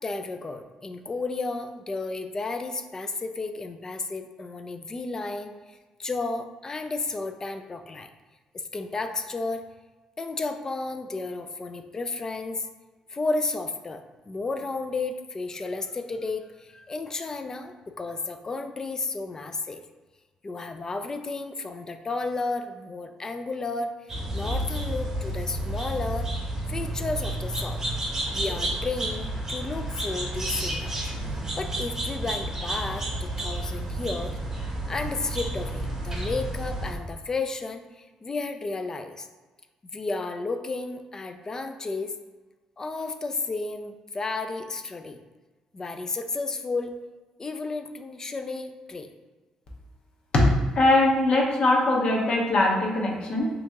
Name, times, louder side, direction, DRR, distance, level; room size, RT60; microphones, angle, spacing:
voice 1, 0.0-8.1 8.5-9.7 10.2-12.7 13.1-19.8 20.4-26.3 26.7-27.8 28.3-31.0 31.6-34.4 34.9-39.3 39.9-42.1 42.8-45.2 45.7-46.9 47.4-49.1, left 3 dB, 25° left, 7 dB, 0.3 m, -32 dB
sound 1, 24.1-37.0, right 1 dB, 20° right, 0.8 m, -31 dB
voice 2, 50.7-53.5, left 2 dB, 50° left, -1 dB, 0.8 m, -22 dB
2.9 x 2.6 x 3.5 m, 1.3 s
cardioid pair, 100°, 2 cm